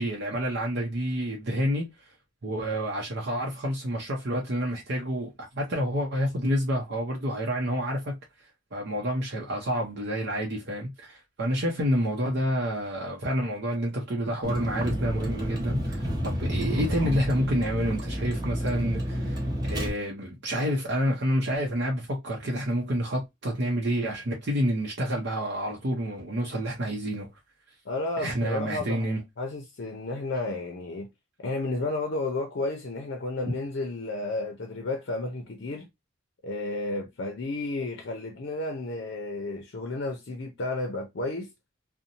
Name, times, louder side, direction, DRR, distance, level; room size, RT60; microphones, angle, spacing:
voice 1, 0.0-1.9 2.4-8.1 8.7-27.3 28.2-29.2, equal, 60° right, 0.7 m, -28 dB
Vehicle, 14.4-19.9, equal, 20° right, 0.7 m, -30 dB
voice 2, 27.9-31.1 31.4-35.9 36.4-41.5, left 2 dB, 60° left, 0.5 m, -32 dB
2.6 x 2.1 x 2.7 m
head